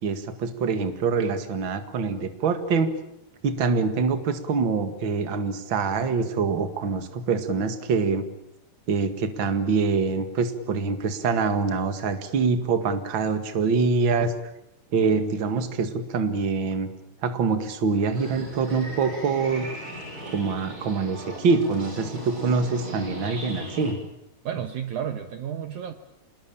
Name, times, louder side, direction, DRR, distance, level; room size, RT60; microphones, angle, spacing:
voice 1, 0.0-2.9 3.4-8.3 8.9-14.3 14.9-16.9 17.2-19.7 20.3-24.0, right 4 dB, 40° right, 8 dB, 2.2 m, -25 dB
sound 1, 18.1-23.9, equal, 25° right, 6.8 m, -38 dB
voice 2, 24.4-25.9, right 9 dB, 65° right, 8 dB, 2.3 m, -32 dB
27.0 x 20.5 x 8.7 m, 0.83 s
omnidirectional pair, 4.2 m